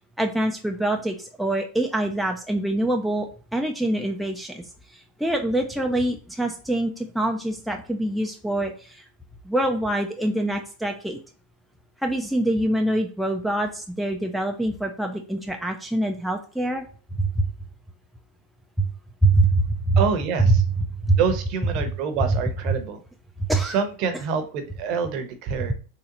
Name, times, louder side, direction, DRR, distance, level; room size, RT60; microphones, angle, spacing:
voice 1, 0.2-4.6 4.9-9.0 9.5-11.2 12.0-16.8 17.2-17.5 18.8-18.9 19.2-20.0 20.5-20.6 21.0-21.2 23.4-23.8, right 1 dB, ahead, 2 dB, 0.4 m, -24 dB
voice 2, 20.0-20.6 21.2-23.0 23.6-25.7, right 6 dB, 45° right, 8 dB, 0.7 m, -26 dB
3.8 x 3.0 x 2.9 m, 0.38 s
supercardioid pair, 150°, 0 cm